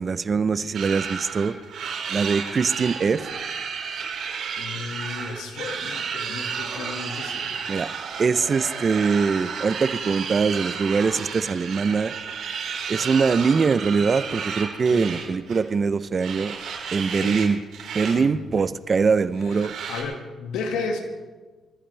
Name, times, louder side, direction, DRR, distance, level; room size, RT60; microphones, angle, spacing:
voice 1, 0.0-1.6 2.1-3.3 7.7-7.9 8.2-12.1 12.9-16.5 16.9-17.6 17.9-19.7, right 5 dB, 40° right, 14 dB, 0.7 m, -22 dB
sound 1, 0.7-15.7 16.2-17.5 17.7-18.1 18.5-18.6 19.5-20.0, right 6 dB, 75° right, 4.6 m, -32 dB
voice 2, 4.6-7.7 14.9-15.1 17.1-17.4 18.1-18.3 19.5-21.0, left 4 dB, 90° left, 3 dB, 2.0 m, -33 dB
24.0 x 14.5 x 3.4 m, 1.3 s
cardioid pair, 90°, 0 cm